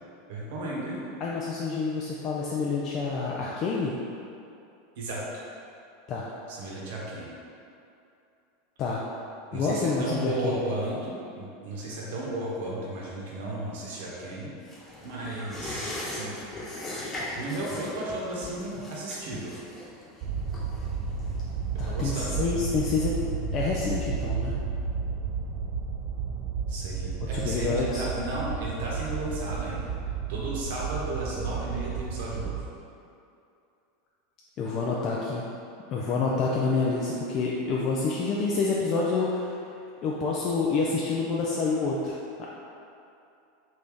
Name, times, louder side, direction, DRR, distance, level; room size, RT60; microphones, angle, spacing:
voice 1, 0.3-1.0 5.0-5.4 6.5-7.3 9.5-14.5 15.0-15.9 16.2-16.4 17.3-19.5 21.8-22.4 26.7-29.9 30.3-32.6, right 2 dB, 70° right, -5 dB, 0.9 m, -34 dB
voice 2, 1.2-4.0 6.1-6.3 8.8-9.0 9.5-10.6 21.8-23.2 23.5-24.5 27.2-28.0 34.6-35.4 35.9-39.6 40.0-42.5, left 4 dB, 45° left, -4 dB, 0.4 m, -28 dB
sound 1, 14.6-21.7 22.0-22.1, left 1 dB, 25° left, 1.0 m, -39 dB
sound 2, 20.2-32.6, right 6 dB, 55° right, 0.4 m, -32 dB
3.2 x 2.6 x 3.6 m, 2.6 s
hypercardioid pair, 95°, 0 cm